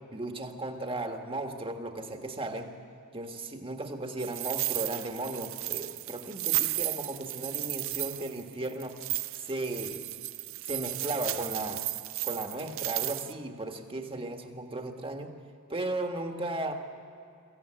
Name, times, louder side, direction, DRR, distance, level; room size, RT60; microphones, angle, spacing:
voice 1, 0.1-2.7 3.1-9.0 9.4-10.0 10.7-11.8 12.2-15.3 15.7-16.7, right 2 dB, 25° right, 4 dB, 1.6 m, -35 dB
sound 1, 4.2-13.3, right 17 dB, 60° right, 0.5 m, -34 dB
23.5 x 15.5 x 8.8 m, 2.7 s
head